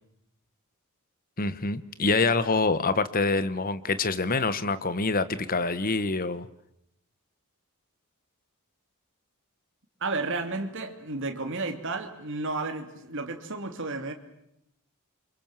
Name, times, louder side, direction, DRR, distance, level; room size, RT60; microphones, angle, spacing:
voice 1, 1.4-6.5, left 3 dB, 40° left, 14 dB, 1.3 m, -26 dB
voice 2, 10.0-14.1, right 3 dB, 60° right, 5 dB, 2.9 m, -32 dB
28.0 x 25.0 x 7.4 m, 0.80 s
head